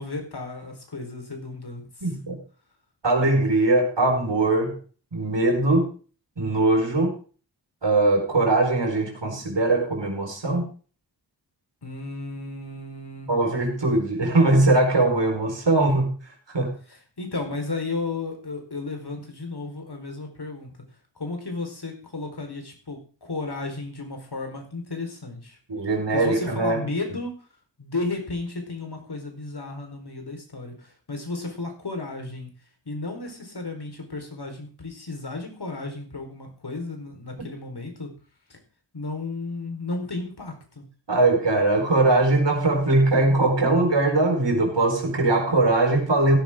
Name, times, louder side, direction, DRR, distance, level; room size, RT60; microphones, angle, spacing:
voice 1, 0.0-2.2 11.8-13.4 16.9-20.7 21.2-25.6 26.1-27.3 27.8-32.5 32.9-38.1 38.5-38.6 38.9-40.8, left 3 dB, 60° left, 3 dB, 4.4 m, -33 dB
voice 2, 2.0-2.4 3.0-4.8 5.1-5.9 6.4-7.1 7.8-10.7 13.3-16.1 16.5-16.7 25.7-26.8 41.1-46.4, right 2 dB, 70° right, 2 dB, 5.0 m, -21 dB
16.0 x 10.5 x 3.8 m, 0.38 s
wide cardioid pair, 50°, 44 cm